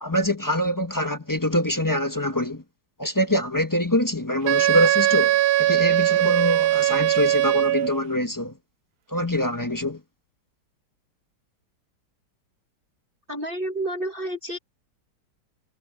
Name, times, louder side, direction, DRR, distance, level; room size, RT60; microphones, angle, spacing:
voice 1, 0.0-2.6 3.0-8.5 9.1-10.0, left 1 dB, 15° left, 1.0 m, -24 dB
Wind instrument woodwind instrument, 4.5-8.0, right 14 dB, 70° right, 0.9 m, -20 dB
voice 2, 13.3-14.6, right 1 dB, 30° right, 1.8 m, -30 dB
omnidirectional pair, 1.9 m